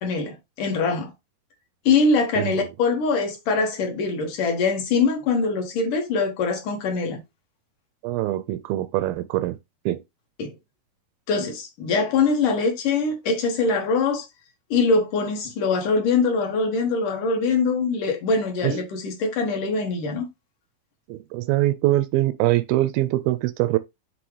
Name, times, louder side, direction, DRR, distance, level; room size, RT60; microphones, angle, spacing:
voice 1, 0.0-1.1 1.9-7.2 10.4-10.5 11.3-14.3 14.7-20.3, left 4 dB, 65° left, 2.6 m, -23 dB
voice 2, 8.0-9.6 9.9-10.0 18.6-18.7 21.1-23.8, right 16 dB, 80° right, 2.3 m, -23 dB
7.8 x 3.1 x 4.8 m
omnidirectional pair, 4.4 m